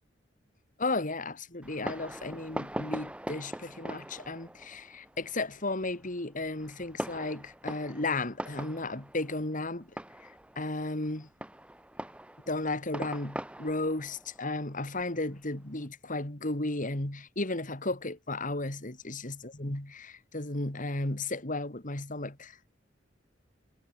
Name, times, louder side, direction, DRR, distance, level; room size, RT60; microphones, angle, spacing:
voice 1, 0.8-9.9 10.2-11.3 12.5-22.6, left 2 dB, 45° left, 2.9 m, -34 dB
Fireworks, 1.6-15.8, right 1 dB, 5° right, 2.1 m, -42 dB
head